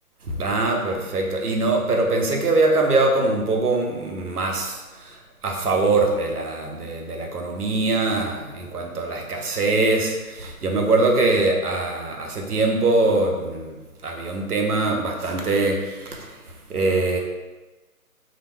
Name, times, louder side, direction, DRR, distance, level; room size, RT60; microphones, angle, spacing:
voice 1, 0.3-5.2 5.4-13.7 14.0-16.3 16.7-17.2, right 2 dB, 85° right, 1 dB, 0.7 m, -22 dB
2.4 x 2.1 x 3.1 m, 1.2 s
figure-of-eight pair, 140°, 44 cm